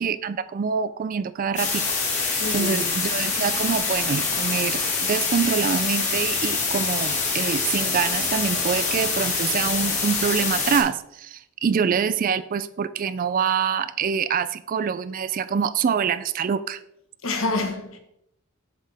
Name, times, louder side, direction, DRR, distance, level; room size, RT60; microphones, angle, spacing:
voice 1, 0.0-1.8 2.2-16.8, right 6 dB, 40° right, 0.3 m, -25 dB
sound 1, 1.6-10.8, left 4 dB, 35° left, 2.0 m, -25 dB
voice 2, 2.4-3.0 17.2-18.0, left 3 dB, 65° left, 1.3 m, -28 dB
7.5 x 7.5 x 3.4 m
head